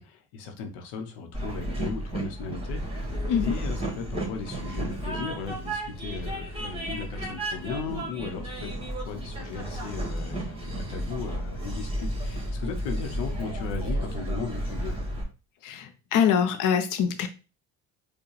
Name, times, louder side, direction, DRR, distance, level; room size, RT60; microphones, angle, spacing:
voice 1, 0.0-15.0, left 5 dB, 80° left, 5 dB, 0.9 m, -37 dB
Train, 1.3-15.2, right 1 dB, 15° right, 1.6 m, -32 dB
voice 2, 15.6-17.3, left 7 dB, 45° left, 8 dB, 0.6 m, -24 dB
4.4 x 2.3 x 3.2 m, 0.32 s
hypercardioid pair, 65°, 44 cm